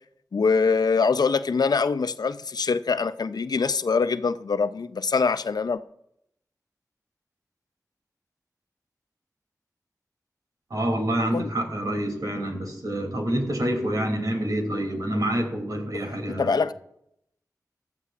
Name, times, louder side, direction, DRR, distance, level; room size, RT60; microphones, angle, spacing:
voice 1, 0.3-5.8 11.3-11.5 16.3-16.7, left 5 dB, 75° left, 0.5 m, -24 dB
voice 2, 10.7-16.7, right 1 dB, 65° right, 3.0 m, -27 dB
18.5 x 13.0 x 2.5 m
cardioid pair, 50°, 7 cm